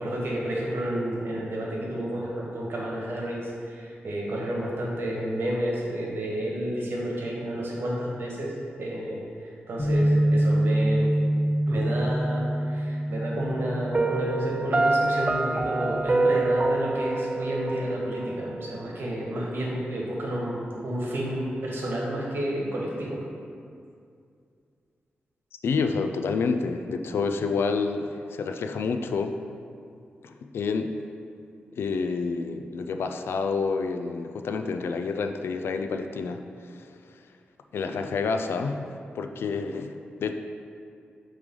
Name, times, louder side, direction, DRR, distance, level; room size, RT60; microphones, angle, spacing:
voice 1, 0.0-8.5 8.8-11.1 11.7-23.2, right 1 dB, 70° right, -3 dB, 1.4 m, -30 dB
Bass guitar, 9.8-16.0, right 1 dB, 35° left, 1.1 m, -26 dB
Piano, 13.9-18.9, right 2 dB, 30° right, 0.3 m, -26 dB
voice 2, 25.5-29.3 30.2-30.9 31.7-36.9 37.7-38.8 39.1-39.9 40.2-40.3, left 4 dB, 80° left, 6 dB, 0.4 m, -28 dB
8.5 x 3.2 x 3.8 m, 2.4 s
cardioid pair, 70°, 4 cm